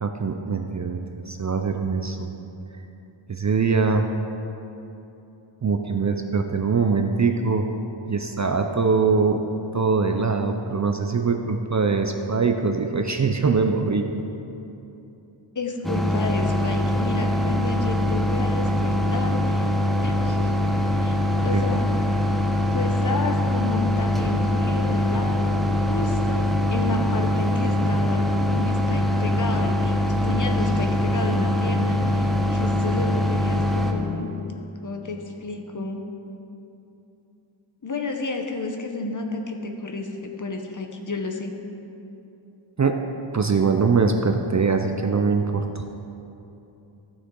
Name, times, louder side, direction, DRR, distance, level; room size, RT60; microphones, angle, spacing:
voice 1, 0.0-2.3 3.3-4.1 5.6-7.7 8.1-9.4 9.7-14.1 21.5-21.6 42.8-43.0 43.3-45.9, right 4 dB, 35° right, 5 dB, 0.5 m, -22 dB
voice 2, 15.5-19.7 20.0-20.5 21.0-21.2 21.4-21.9 22.7-25.6 25.9-34.3 34.8-36.0 37.8-41.6, left 3 dB, 40° left, 3 dB, 0.9 m, -31 dB
sound 1, 15.8-33.9, left 1 dB, ahead, 0.7 m, -23 dB
15.0 x 6.5 x 3.8 m, 2.9 s
wide cardioid pair, 120°, 50 cm